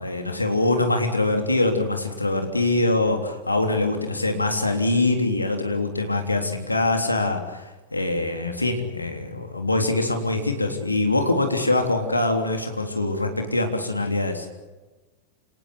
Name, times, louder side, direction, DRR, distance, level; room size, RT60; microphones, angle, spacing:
voice 1, 0.0-14.5, left 2 dB, 85° left, 4 dB, 3.5 m, -23 dB
28.5 x 18.5 x 8.5 m, 1.2 s
figure-of-eight pair, 90°, 0 cm